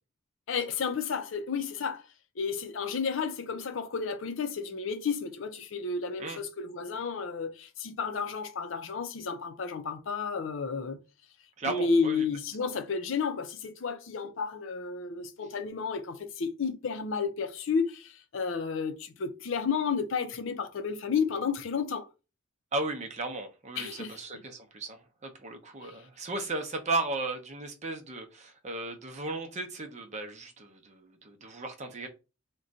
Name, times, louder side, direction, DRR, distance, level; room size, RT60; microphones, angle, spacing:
voice 1, 0.5-2.1 2.4-11.0 11.6-22.1 23.8-24.2 25.8-26.0, left 5 dB, 65° left, 0.5 m, -32 dB
voice 2, 11.6-12.2 22.7-32.1, right 2 dB, 35° right, 0.6 m, -35 dB
2.5 x 2.2 x 3.8 m
head